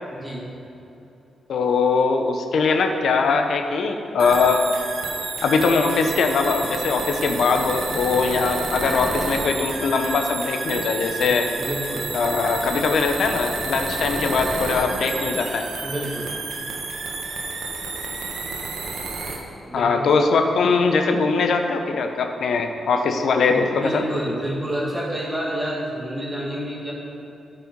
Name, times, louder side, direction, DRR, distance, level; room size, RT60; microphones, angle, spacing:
voice 1, 0.1-0.5 11.2-11.3 11.6-12.1 15.8-16.7 19.7-20.1 23.5-26.9, equal, 20° right, -5 dB, 1.8 m, -29 dB
voice 2, 1.5-4.6 5.4-11.5 12.1-15.7 19.7-24.0, left 4 dB, 75° left, 5 dB, 0.7 m, -21 dB
sound 1, 4.2-19.4, right 3 dB, 85° right, 1.0 m, -30 dB
9.1 x 5.7 x 5.2 m, 2.8 s
cardioid pair, 65°, 0 cm